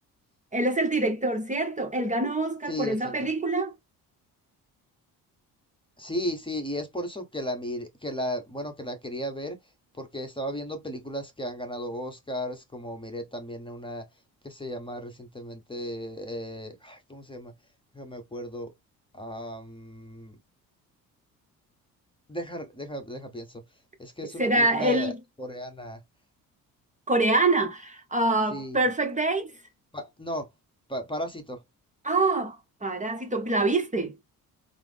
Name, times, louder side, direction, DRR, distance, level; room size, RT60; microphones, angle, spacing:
voice 1, 0.5-3.7 24.4-25.1 27.1-29.5 32.0-34.1, right 2 dB, 20° right, 0.8 m, -25 dB
voice 2, 2.7-3.1 6.0-9.6 9.9-14.1 14.4-17.5 17.9-18.7 19.1-20.3 22.3-23.6 24.0-25.1 25.4-26.0 28.5-28.8 29.9-30.5 30.9-31.6, equal, 15° left, 0.9 m, -35 dB
3.6 x 2.0 x 3.3 m
supercardioid pair, 75°, 37 cm